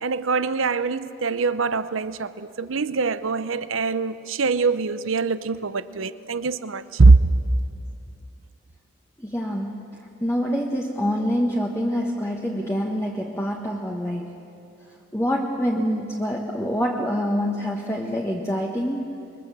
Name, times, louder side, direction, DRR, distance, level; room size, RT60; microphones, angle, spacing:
voice 1, 0.0-7.2, right 3 dB, 85° right, 0.8 m, -22 dB
voice 2, 9.2-14.4 15.1-19.2, equal, 15° left, 1.3 m, -26 dB
26.5 x 22.5 x 7.7 m
head